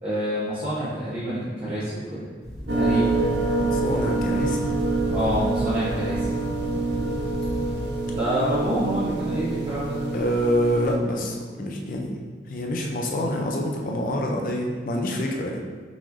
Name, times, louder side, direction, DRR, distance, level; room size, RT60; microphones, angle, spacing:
voice 1, 0.0-2.3 2.7-3.2 5.1-6.3 8.1-10.0, equal, 35° right, -12 dB, 0.9 m, -27 dB
sound 1, 2.4-8.0, equal, 5° left, 0.9 m, -34 dB
sound 2, 2.7-11.0, right 3 dB, 75° right, 0.5 m, -26 dB
voice 2, 3.7-4.7 10.1-12.2 12.5-15.6, equal, 50° left, 0 dB, 0.4 m, -26 dB
5.4 x 3.1 x 2.5 m, 1.5 s
head